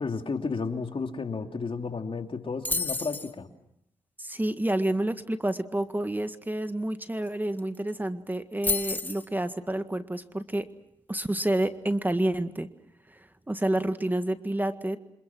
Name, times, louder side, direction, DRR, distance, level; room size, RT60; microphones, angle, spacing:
voice 1, 0.0-3.5, left 4 dB, 45° left, 5 dB, 3.0 m, -32 dB
sound 1, 2.7-3.3 7.3-7.4 7.6-7.9 8.6-9.3, left 3 dB, 15° left, 2.3 m, -29 dB
voice 2, 4.2-10.7 11.1-12.7 13.1-15.0, right 1 dB, 15° right, 9 dB, 1.8 m, -29 dB
29.0 x 26.5 x 6.2 m, 0.77 s
supercardioid pair, 45°, 12 cm